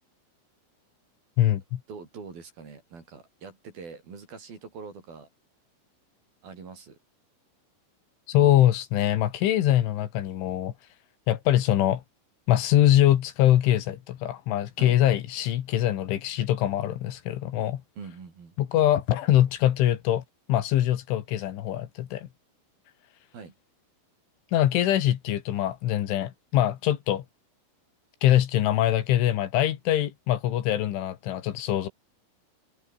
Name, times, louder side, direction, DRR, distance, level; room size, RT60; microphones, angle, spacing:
voice 1, 1.4-1.8 8.3-10.7 11.3-12.0 12.5-17.8 18.6-20.2 20.5-22.3 24.5-27.2 28.2-31.9, left 12 dB, 75° left, 4.1 m, -23 dB
voice 2, 1.9-5.3 6.4-7.0 14.8-15.0 18.0-18.6 23.3-23.5, right 5 dB, 50° right, 6.6 m, -43 dB
omnidirectional pair, 5.7 m